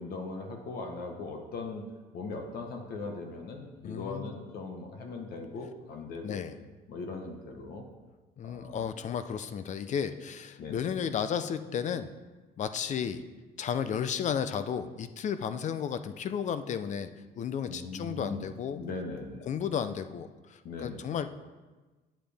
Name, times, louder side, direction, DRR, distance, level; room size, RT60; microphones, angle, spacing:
voice 1, 0.0-1.9 2.1-6.4 6.9-7.8 8.4-8.8 10.6-10.8 17.7-18.5 18.7-19.5 20.6-21.0, left 3 dB, 65° left, 3 dB, 1.1 m, -39 dB
voice 2, 3.8-4.3 6.2-6.6 8.4-12.1 12.6-13.2 13.6-17.1 17.3-18.8 19.4-21.3, left 8 dB, 45° left, 11 dB, 0.6 m, -33 dB
9.2 x 7.5 x 3.4 m, 1.3 s
cardioid pair, 110°, 17 cm